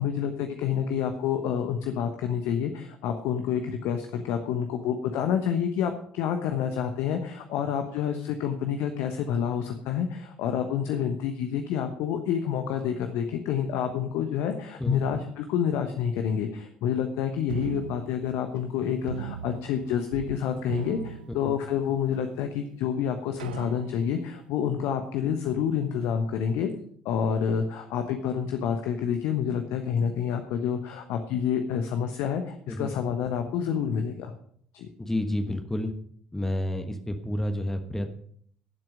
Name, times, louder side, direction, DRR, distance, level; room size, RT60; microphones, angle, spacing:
voice 1, 0.0-26.7 27.0-34.3 34.7-34.9, left 8 dB, 55° left, 6 dB, 1.1 m, -28 dB
sound 1, 17.5-18.7 19.1-20.4 20.6-21.9 22.5-22.6 23.4-24.2, right 9 dB, 75° right, 0.5 m, -39 dB
voice 2, 35.0-35.9 36.3-38.1, left 1 dB, 10° left, 6 dB, 1.3 m, -29 dB
17.0 x 7.7 x 5.1 m, 0.63 s
figure-of-eight pair, 55°, 5 cm